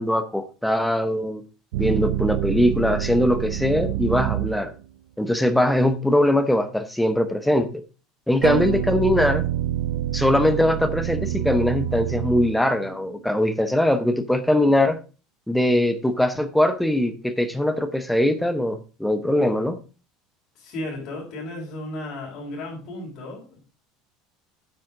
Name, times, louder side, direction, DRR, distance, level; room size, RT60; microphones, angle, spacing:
voice 1, 0.0-1.4 1.8-4.7 5.2-7.8 8.3-9.5 10.1-15.0 15.5-19.8, left 1 dB, ahead, 9 dB, 0.8 m, -21 dB
sound 1, 1.7-4.9 8.4-13.0, right 13 dB, 90° right, 0.5 m, -27 dB
voice 2, 20.5-23.6, left 1 dB, 40° left, -5 dB, 4.6 m, -34 dB
9.2 x 9.2 x 3.7 m, 0.33 s
cardioid pair, 170°, 0 cm